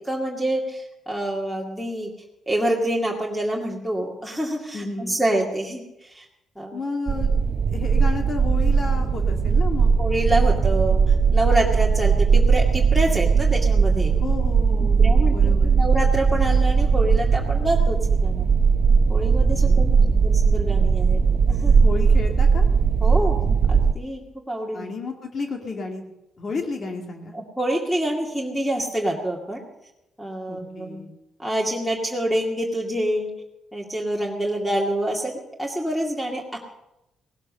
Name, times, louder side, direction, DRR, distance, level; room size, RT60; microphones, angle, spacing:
voice 1, 0.0-2.1 2.5-6.3 6.6-6.8 10.0-14.1 14.8-18.5 19.1-21.2 21.5-21.8 23.0-24.2 24.5-24.9 27.3-29.6 30.2-31.0 31.4-33.3 33.7-36.6, right 1 dB, 5° left, 0 dB, 2.4 m, -27 dB
voice 2, 4.7-5.2 6.7-7.3 7.7-9.9 14.2-15.8 19.5-20.2 21.8-22.7 24.7-26.0 26.4-27.3 30.5-31.1, left 3 dB, 45° left, 3 dB, 2.3 m, -32 dB
sound 1, 7.1-23.9, right 5 dB, 55° right, 0.9 m, -19 dB
18.0 x 11.5 x 6.6 m, 0.90 s
cardioid pair, 90°, 0 cm